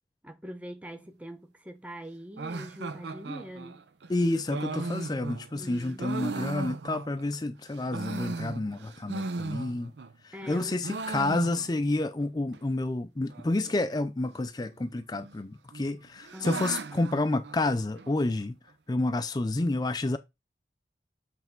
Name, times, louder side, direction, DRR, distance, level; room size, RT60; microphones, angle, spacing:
voice 1, 0.2-3.8 5.6-6.1 10.3-10.8 16.3-16.8, equal, 10° right, 0.7 m, -43 dB
sound 1, 2.4-7.4 7.7-10.1 10.4-12.0 12.2-12.3 12.5-12.6 13.3-13.7 14.7-15.3 15.7-18.1, right 3 dB, 70° right, 0.6 m, -37 dB
voice 2, 4.1-9.9 10.2-18.5 18.9-20.2, left 2 dB, 20° left, 0.4 m, -29 dB
7.8 x 3.5 x 4.4 m
head